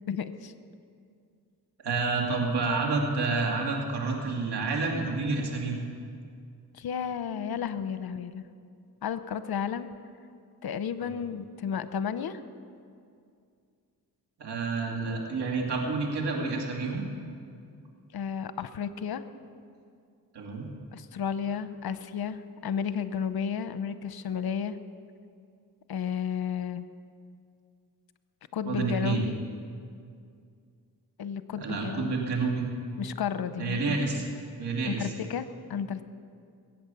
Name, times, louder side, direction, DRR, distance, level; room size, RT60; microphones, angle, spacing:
voice 1, 0.1-0.5 6.7-8.4 9.0-9.9 10.6-12.4 18.1-19.2 20.9-24.8 25.9-26.8 28.5-29.4 31.2-32.2 33.0-34.2 34.8-36.0, left 7 dB, 65° left, 12 dB, 0.8 m, -32 dB
voice 2, 1.8-5.8 11.0-11.1 14.4-17.0 20.3-20.7 28.7-29.2 31.5-32.6 33.6-34.2 34.6-35.1, right 4 dB, 80° right, 0 dB, 2.6 m, -29 dB
21.5 x 9.0 x 7.0 m, 2.3 s
cardioid pair, 80°, 39 cm